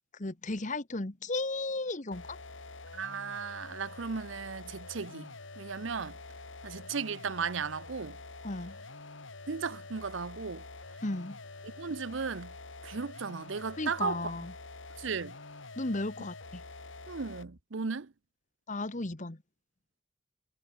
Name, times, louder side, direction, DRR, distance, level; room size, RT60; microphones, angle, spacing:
voice 1, 0.2-2.4 8.4-8.8 11.0-11.4 13.8-14.5 15.8-16.6 18.7-19.4, left 2 dB, 35° left, 1.3 m, -35 dB
sound 1, 2.1-17.6, left 3 dB, 65° left, 3.1 m, -47 dB
voice 2, 2.9-6.2 6.6-8.2 9.5-10.6 11.6-12.5 12.8-14.2 15.0-15.4 17.1-18.1, right 5 dB, 65° right, 0.7 m, -36 dB
head